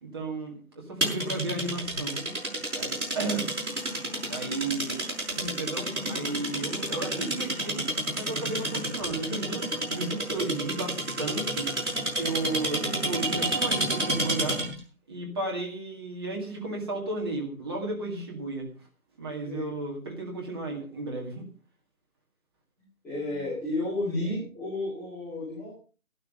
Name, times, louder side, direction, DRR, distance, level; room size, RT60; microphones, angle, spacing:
voice 1, 0.0-3.5 4.3-5.0 5.4-7.8 8.1-11.7 12.1-14.6 15.1-18.7 19.2-21.5, right 2 dB, 15° right, 0 dB, 2.1 m, -34 dB
sound 1, 1.0-14.8, right 1 dB, 55° right, 6.2 m, -30 dB
voice 2, 23.0-25.7, left 2 dB, 5° left, -13 dB, 2.4 m, -32 dB
12.5 x 12.0 x 5.1 m, 0.37 s
figure-of-eight pair, 165°, 43 cm